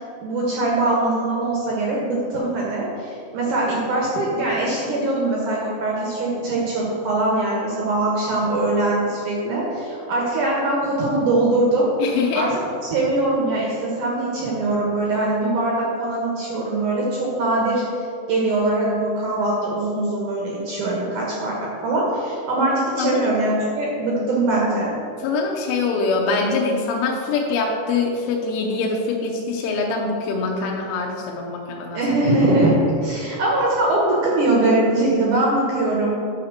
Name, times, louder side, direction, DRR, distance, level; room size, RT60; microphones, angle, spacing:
voice 1, 0.2-11.9 12.3-12.5 12.9-17.8 18.3-24.9 31.9-36.2, right 2 dB, 75° right, -4 dB, 1.8 m, -22 dB
voice 2, 12.0-12.5 23.0-23.3 25.2-32.0, left 4 dB, 85° left, -1 dB, 3.3 m, -23 dB
11.0 x 4.3 x 6.5 m, 2.4 s
omnidirectional pair, 5.6 m